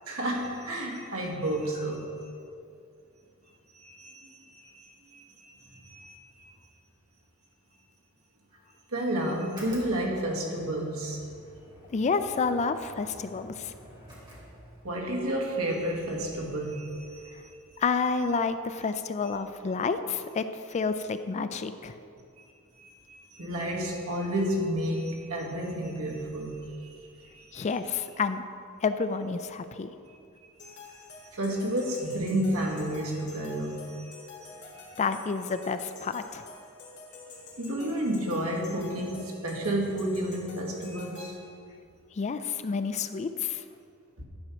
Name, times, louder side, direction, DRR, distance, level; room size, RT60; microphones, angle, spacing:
voice 1, 0.1-2.4 3.7-6.5 8.9-11.2 14.8-17.8 22.4-22.5 22.8-27.7 30.1-30.2 30.6-34.9 37.6-41.6 44.2-44.3, right 1 dB, 80° right, -1 dB, 1.6 m, -32 dB
sound 1, 9.4-15.1, equal, 20° right, 2.3 m, -50 dB
voice 2, 11.9-13.7 17.8-22.0 27.5-28.4 28.8-29.9 35.0-36.4 42.2-43.6, left 5 dB, 30° left, 10 dB, 0.3 m, -29 dB
sound 2, 30.6-41.3, left 3 dB, 55° left, 1.8 m, -48 dB
10.5 x 4.4 x 6.2 m, 2.4 s
head